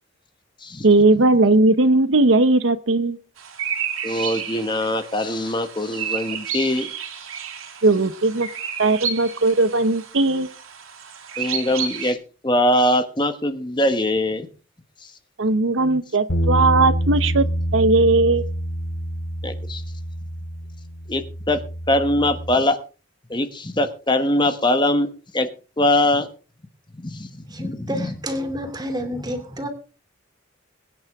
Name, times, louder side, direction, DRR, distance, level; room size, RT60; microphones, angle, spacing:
voice 1, 0.8-3.2 7.8-8.5 8.8-10.5 15.4-17.4 17.7-18.4, right 2 dB, 70° right, 0.8 m, -18 dB
sound 1, 3.4-12.1, right 7 dB, 90° right, 3.4 m, -31 dB
voice 2, 4.0-6.9 11.4-12.2 12.4-14.5 19.4-19.8 21.1-21.6 21.9-22.8 23.3-25.5 25.8-26.3 27.0-27.3 27.6-28.1, left 1 dB, 20° left, 1.1 m, -22 dB
sound 2, 16.3-22.6, equal, 75° left, 2.9 m, -26 dB
voice 3, 27.5-29.7, equal, 20° right, 2.9 m, -29 dB
22.5 x 9.6 x 3.6 m
head